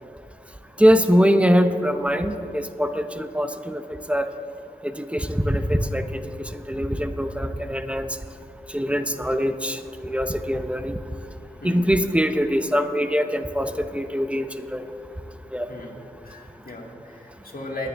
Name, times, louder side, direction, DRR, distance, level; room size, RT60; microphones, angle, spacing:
voice 1, 0.8-3.8 4.1-4.3 4.8-8.2 8.7-10.9 11.6-14.8 15.5-15.7, equal, 5° right, 8 dB, 0.7 m, -23 dB
voice 2, 15.7-16.0 16.2-17.9, left 1 dB, 60° left, -2 dB, 2.3 m, -37 dB
20.5 x 9.5 x 3.4 m, 2.9 s
wide cardioid pair, 55°, 16 cm